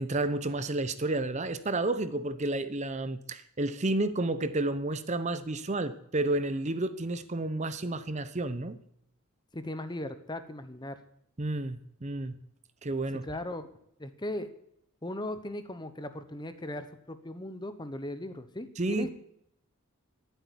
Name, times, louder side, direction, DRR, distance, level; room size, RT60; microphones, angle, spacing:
voice 1, 0.0-8.8 11.4-12.4 12.8-13.2 18.8-19.1, right 2 dB, 35° right, 12 dB, 0.7 m, -31 dB
voice 2, 9.5-11.0 13.2-13.7 14.0-14.5 15.0-19.1, left 1 dB, 20° left, 10 dB, 1.0 m, -38 dB
14.0 x 8.1 x 10.0 m, 0.73 s
head